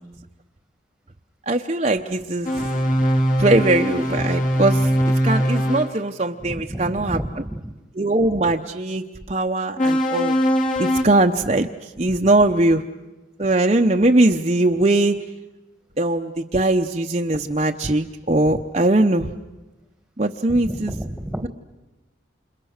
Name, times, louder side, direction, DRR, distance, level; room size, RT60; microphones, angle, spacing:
voice 1, 1.5-2.5 3.4-4.9 5.2-7.2 8.0-10.4 10.8-12.8 13.4-15.2 16.0-19.3 20.2-20.9, right 2 dB, 35° right, 3 dB, 0.8 m, -20 dB
sound 1, 2.4-5.9 9.8-11.0, equal, 40° left, 2.7 m, -21 dB
voice 2, 6.4-7.7 20.5-21.5, right 1 dB, 5° right, 8 dB, 1.5 m, -31 dB
30.0 x 27.5 x 6.6 m, 1.1 s
head